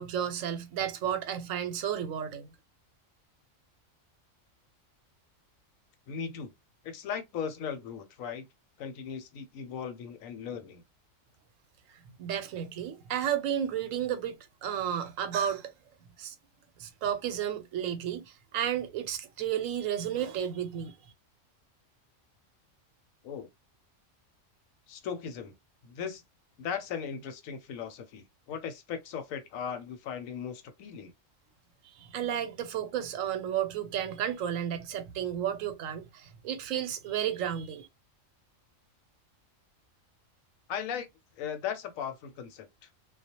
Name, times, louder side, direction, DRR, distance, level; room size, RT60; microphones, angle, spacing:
voice 1, 0.0-2.5 12.2-14.4 14.6-15.7 16.2-16.3 16.8-20.9 32.0-37.9, right 9 dB, 85° right, 1.0 m, -32 dB
voice 2, 6.1-6.5 6.8-8.5 8.8-10.8 23.2-23.5 24.9-25.5 25.8-26.2 26.6-31.1 40.7-41.1 41.4-42.9, left 7 dB, 85° left, 1.0 m, -37 dB
2.3 x 2.1 x 2.8 m
omnidirectional pair, 1.4 m